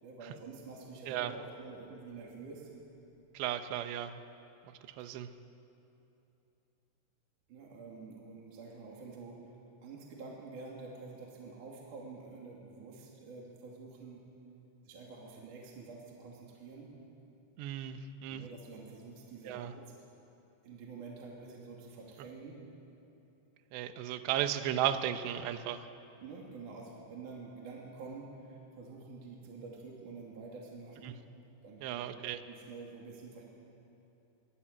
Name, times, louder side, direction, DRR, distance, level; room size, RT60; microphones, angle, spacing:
voice 1, 0.0-2.7 7.5-9.6 9.8-14.2 14.9-16.9 18.3-20.0 20.6-22.6 26.2-31.2 31.6-32.1 32.5-33.4, right 4 dB, 50° right, -2 dB, 3.7 m, -48 dB
voice 2, 3.3-4.2 4.7-5.3 17.6-18.4 19.5-19.7 23.7-25.9 31.0-31.1 31.8-32.4, right 11 dB, 75° right, 9 dB, 3.0 m, -35 dB
24.5 x 19.5 x 8.9 m, 2.9 s
omnidirectional pair, 5.3 m